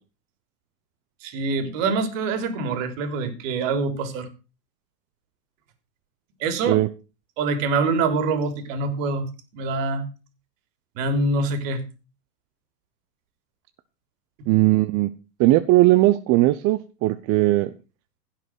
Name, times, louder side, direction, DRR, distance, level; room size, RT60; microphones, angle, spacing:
voice 1, 1.2-4.3 6.4-6.8 7.4-9.2 9.5-10.0 11.0-11.8, right 3 dB, 55° right, 3.5 m, -25 dB
voice 2, 14.5-15.1 15.4-17.7, right 17 dB, 35° right, 0.8 m, -18 dB
16.0 x 5.9 x 6.2 m
hypercardioid pair, 105°, 48 cm